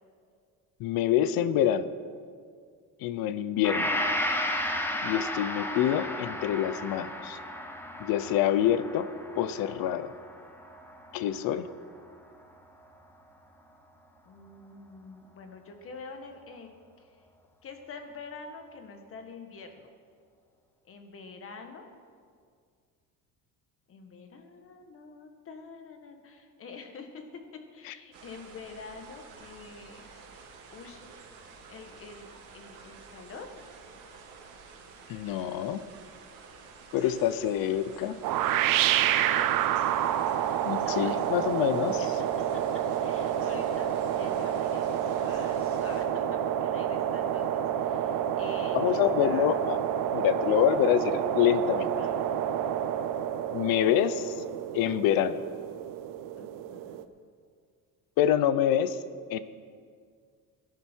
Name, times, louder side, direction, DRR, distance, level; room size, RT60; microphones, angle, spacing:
voice 1, 0.8-1.9 3.0-3.9 5.0-7.4 8.0-9.1 9.4-10.1 11.1-11.7 27.9-28.0 35.1-35.8 36.9-38.2 40.6-42.0 48.7-49.8 50.1-51.9 53.5-54.3 54.7-55.4 58.2-59.0 59.3-59.4, left 10 dB, 75° left, 14 dB, 0.7 m, -26 dB
Gong, 3.6-12.0 12.4-12.5, left 1 dB, 5° left, 0.7 m, -34 dB
voice 2, 14.2-16.7 17.0-17.2 17.6-19.9 20.8-21.9 23.9-27.2 27.7-30.3 30.7-31.1 31.7-33.5 37.0-37.1 39.2-39.5 40.8-41.2 42.0-42.3 42.5-42.6 43.0-49.5 52.0-52.2 56.4-57.0, left 4 dB, 40° left, 5 dB, 1.4 m, -46 dB
sound 1, 28.1-46.1, right 5 dB, 90° right, 2.0 m, -50 dB
sound 2, 38.2-57.0, right 10 dB, 65° right, 0.7 m, -29 dB
17.0 x 10.5 x 4.5 m, 2.1 s
cardioid pair, 155°, 35 cm